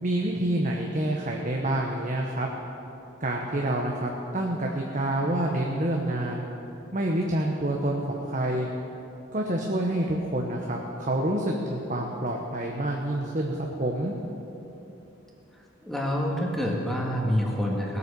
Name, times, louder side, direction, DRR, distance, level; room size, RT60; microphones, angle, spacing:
voice 1, 0.0-2.5 3.2-6.5 6.9-8.7 9.3-14.1, right 1 dB, 40° right, 0 dB, 1.0 m, -27 dB
voice 2, 15.8-18.0, equal, ahead, -2 dB, 1.8 m, -27 dB
18.5 x 8.3 x 6.9 m, 3.0 s
head